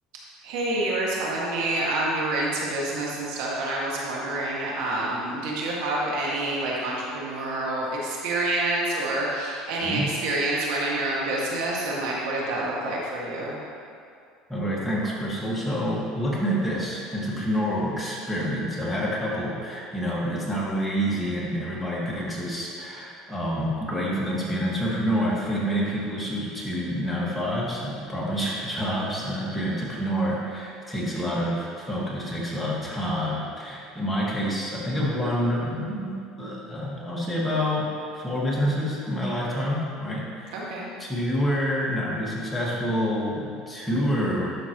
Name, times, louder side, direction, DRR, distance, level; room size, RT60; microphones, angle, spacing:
voice 1, 0.4-13.6 40.5-40.9, right 2 dB, 75° right, -4 dB, 1.9 m, -27 dB
voice 2, 14.5-40.7 41.0-44.6, equal, 5° left, -6 dB, 1.7 m, -27 dB
11.5 x 6.1 x 3.0 m, 2.3 s
supercardioid pair, 125°, 0 cm